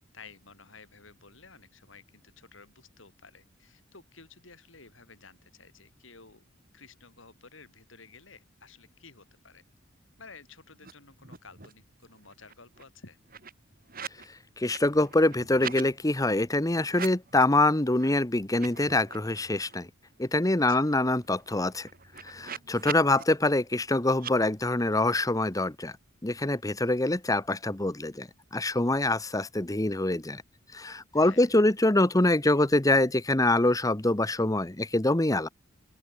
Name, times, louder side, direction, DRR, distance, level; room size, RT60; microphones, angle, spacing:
voice 1, 0.0-6.4 6.7-9.6 10.2-13.2 20.6-20.9 31.1-31.6, left 4 dB, 75° left, 6.2 m, -53 dB
sound 1, 10.8-10.9 11.2-11.8 12.2-14.3 14.6-15.9 16.8-17.6 18.0-18.1 18.5-19.8 20.2-20.3 20.6-23.2 24.1-24.3, right 7 dB, 45° right, 4.0 m, -42 dB
voice 2, 14.6-19.9 20.2-21.9 22.2-25.9 26.2-30.4 30.7-35.5, left 2 dB, 20° left, 1.1 m, -25 dB
open air
head